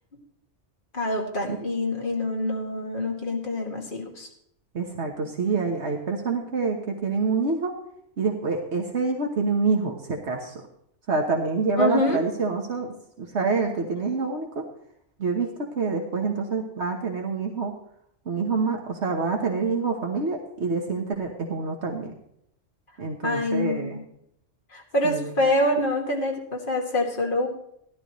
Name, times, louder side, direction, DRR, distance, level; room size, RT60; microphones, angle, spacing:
voice 1, 0.9-4.3 11.8-12.2 23.2-24.0 24.7-27.5, left 1 dB, 45° left, 0 dB, 2.2 m, -26 dB
voice 2, 4.7-7.7 8.2-10.5 11.1-14.6 15.2-17.7 18.2-22.1 23.0-24.0 25.0-25.3, right 4 dB, 70° right, 2 dB, 1.5 m, -27 dB
15.5 x 11.5 x 3.1 m, 0.72 s
omnidirectional pair, 1.2 m